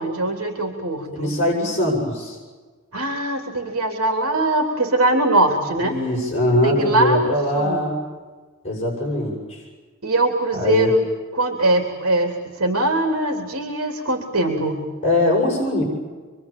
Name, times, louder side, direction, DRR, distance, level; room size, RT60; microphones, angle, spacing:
voice 1, 0.0-1.3 2.9-6.0 6.6-7.9 10.0-11.0 11.3-14.9, right 2 dB, 85° right, 3 dB, 3.5 m, -21 dB
voice 2, 1.1-2.4 5.8-7.9 8.6-9.6 10.6-10.9 15.0-15.8, left 1 dB, 30° left, -3 dB, 7.8 m, -21 dB
27.5 x 23.5 x 8.9 m, 1.4 s
head